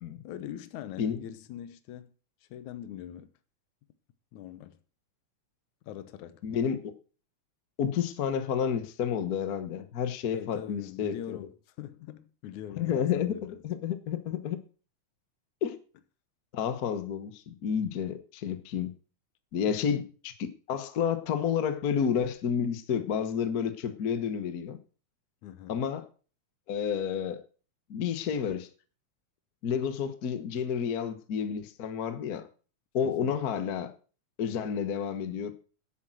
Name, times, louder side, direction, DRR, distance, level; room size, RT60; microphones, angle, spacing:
voice 1, 0.2-2.1 2.5-3.3 4.3-4.8 5.9-6.4 10.3-11.5 11.8-13.6 25.4-25.8 33.0-33.4, left 11 dB, 80° left, 2.3 m, -42 dB
voice 2, 6.4-6.9 7.8-11.4 12.8-14.6 15.6-15.8 16.5-18.9 19.5-24.8 25.7-26.0 26.7-27.4 27.9-28.7 29.6-32.5 32.9-33.9 34.4-35.5, left 7 dB, 60° left, 0.9 m, -30 dB
10.5 x 8.5 x 7.6 m
omnidirectional pair, 3.4 m